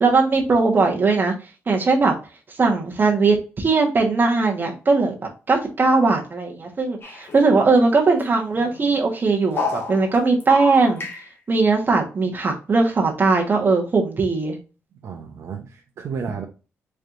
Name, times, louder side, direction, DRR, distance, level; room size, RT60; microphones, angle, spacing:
voice 1, 0.0-1.3 1.7-2.1 2.5-5.1 5.5-11.1 11.5-14.6, right 3 dB, 40° right, 0 dB, 1.2 m, -19 dB
sound 1, 7.0-7.9 8.2-8.3 8.5-9.0 9.5-11.3, left 4 dB, 45° left, 1.3 m, -31 dB
voice 2, 14.9-16.5, right 6 dB, 65° right, 2 dB, 0.7 m, -32 dB
4.4 x 3.3 x 2.5 m, 0.33 s
cardioid pair, 75°, 5 cm